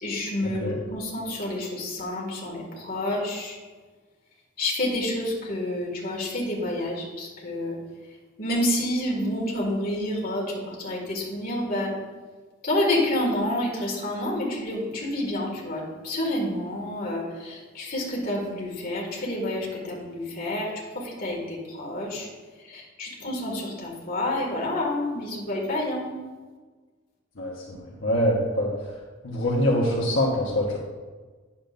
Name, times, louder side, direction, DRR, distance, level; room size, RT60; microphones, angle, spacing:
voice 1, 0.0-3.6 4.6-7.7 8.4-10.4 10.8-11.9 12.6-20.7 21.0-22.3 22.7-26.1, left 1 dB, 45° left, -3 dB, 2.0 m, -29 dB
voice 2, 27.4-28.7 29.2-30.8, equal, 70° left, -5 dB, 1.1 m, -24 dB
10.0 x 7.3 x 2.6 m, 1.4 s
head